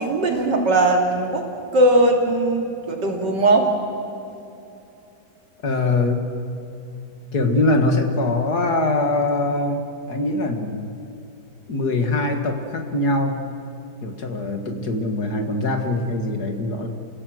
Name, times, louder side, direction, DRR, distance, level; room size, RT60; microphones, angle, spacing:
voice 1, 0.0-1.4 1.7-3.7, right 2 dB, 70° right, 1 dB, 3.3 m, -19 dB
voice 2, 5.6-6.3 7.3-9.8 10.1-10.9 11.7-13.5 14.0-16.9, left 2 dB, 60° left, 4 dB, 2.4 m, -22 dB
29.0 x 16.5 x 7.8 m, 2.7 s
omnidirectional pair, 1.9 m